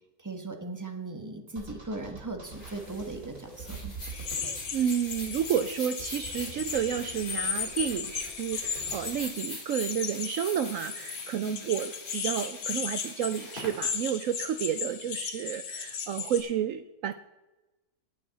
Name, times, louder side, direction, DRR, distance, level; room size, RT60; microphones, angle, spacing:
voice 1, 0.2-3.9 11.4-11.6, right 2 dB, 15° right, 5 dB, 1.0 m, -38 dB
sound 1, 1.6-9.2, right 4 dB, 55° right, 2.6 m, -46 dB
sound 2, 2.5-14.9, left 1 dB, 30° left, 3.7 m, -45 dB
sound 3, 4.1-16.4, left 6 dB, 70° left, 1.7 m, -36 dB
voice 2, 4.3-17.1, right 9 dB, 70° right, 11 dB, 0.8 m, -31 dB
18.5 x 6.9 x 4.1 m, 1.1 s
omnidirectional pair, 1.8 m